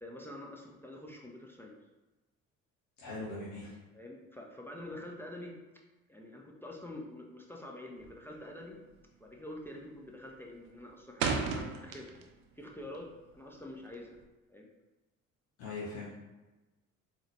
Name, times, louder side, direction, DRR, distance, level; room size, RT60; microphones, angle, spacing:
voice 1, 0.0-1.8 3.9-5.6 6.1-8.8 9.2-12.1 12.6-13.1 13.3-14.2 14.5-14.7, left 1 dB, 5° left, -1 dB, 0.5 m, -46 dB
voice 2, 3.0-3.7 15.6-16.1, left 2 dB, 60° left, -6 dB, 0.9 m, -40 dB
sound 1, 8.0-8.4 8.7-9.0 9.3-9.8 10.1-12.5 12.8-14.2, right 5 dB, 80° right, 0.6 m, -35 dB
3.9 x 2.7 x 3.1 m, 1.1 s
figure-of-eight pair, 50°, 42 cm